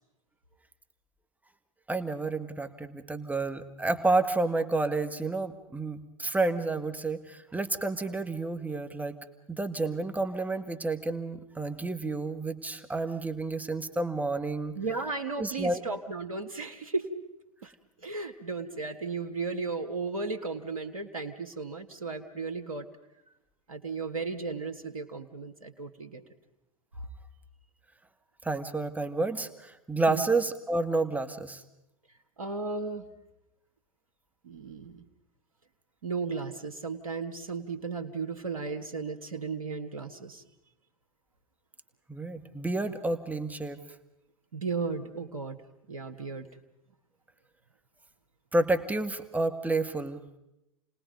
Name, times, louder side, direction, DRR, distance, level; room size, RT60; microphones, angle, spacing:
voice 1, 1.9-9.2 9.5-14.8 15.4-15.8 28.4-31.6 42.1-43.8 48.5-50.2, right 2 dB, 10° right, 8 dB, 1.5 m, -30 dB
voice 2, 14.7-17.1 17.6-17.7 18.0-22.9 23.7-26.2 30.1-30.3 32.4-33.0 34.4-35.0 36.0-40.4 44.5-45.6 45.9-46.5, right 4 dB, 85° right, 7 dB, 1.6 m, -35 dB
29.5 x 19.5 x 5.2 m, 0.89 s
hypercardioid pair, 95°, 17 cm